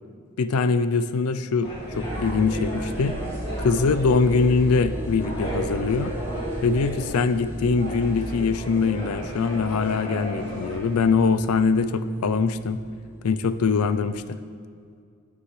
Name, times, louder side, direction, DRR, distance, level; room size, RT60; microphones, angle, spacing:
voice 1, 0.4-3.2 3.6-6.1 6.6-12.8 13.2-14.4, left 4 dB, 80° left, 11 dB, 0.4 m, -23 dB
sound 1, 1.6-11.2, right 1 dB, 25° left, 2.0 m, -35 dB
sound 2, 1.9-14.2, equal, 10° right, 0.5 m, -35 dB
14.5 x 6.1 x 3.2 m, 2.3 s
head